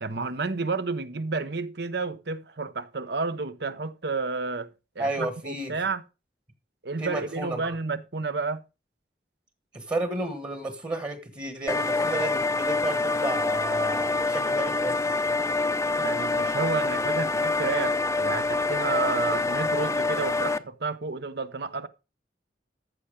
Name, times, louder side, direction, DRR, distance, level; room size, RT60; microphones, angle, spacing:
voice 1, 0.0-4.7 5.0-6.0 6.8-8.6 16.0-21.9, right 3 dB, 65° right, 0.9 m, -31 dB
voice 2, 5.0-5.7 7.0-7.7 9.7-15.0, right 2 dB, 25° right, 1.5 m, -32 dB
sound 1, 11.7-20.6, left 3 dB, 15° left, 0.5 m, -26 dB
14.0 x 5.8 x 5.0 m
head